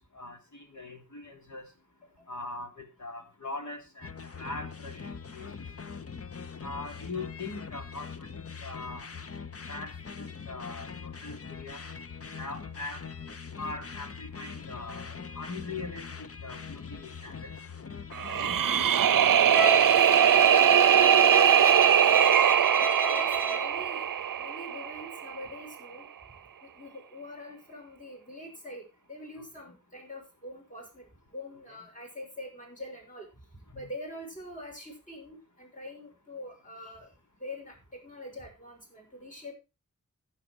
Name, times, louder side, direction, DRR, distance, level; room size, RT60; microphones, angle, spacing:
voice 1, 0.1-1.7 2.3-4.1 4.4-5.5 6.6-9.1 9.7-11.8 12.3-13.0 13.6-16.1 16.4-17.5 18.2-18.6 29.4-29.5 33.7-33.9, left 3 dB, 60° left, 3 dB, 3.4 m, -41 dB
sound 1, 4.0-18.9, left 6 dB, 45° left, 0.9 m, -42 dB
sound 2, 18.1-25.2, right 9 dB, 80° right, 0.6 m, -21 dB
Bowed string instrument, 19.5-23.7, right 2 dB, 5° left, 3.2 m, -32 dB
voice 2, 20.3-20.7 21.2-22.2 22.8-24.0 24.4-26.1 26.6-33.3 33.5-37.1 37.4-39.5, left 1 dB, 25° left, 1 dB, 6.4 m, -44 dB
11.5 x 10.0 x 4.7 m, 0.29 s
wide cardioid pair, 80°, 32 cm